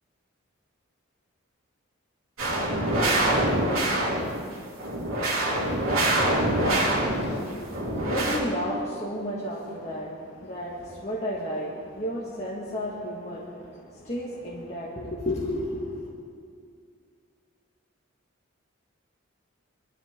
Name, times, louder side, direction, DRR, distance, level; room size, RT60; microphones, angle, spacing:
sound 1, 2.4-4.4 4.8-7.4 7.7-8.4, right 1 dB, 80° right, 3.1 m, -25 dB
voice 1, 6.6-16.1, equal, 30° left, -6 dB, 1.9 m, -33 dB
23.0 x 13.5 x 3.8 m, 2.2 s
head